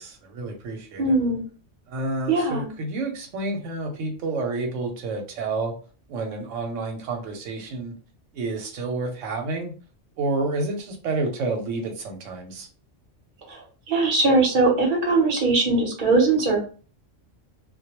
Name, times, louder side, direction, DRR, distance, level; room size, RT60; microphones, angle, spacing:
voice 1, 0.0-1.2 1.9-5.7 6.1-7.9 8.3-9.7 10.2-12.7, right 3 dB, 85° right, 2 dB, 1.0 m, -29 dB
voice 2, 1.0-1.4 2.3-2.7 13.5-13.6 13.9-16.7, right 3 dB, 45° right, 0 dB, 0.8 m, -20 dB
2.2 x 2.2 x 2.8 m, 0.38 s
omnidirectional pair, 1.3 m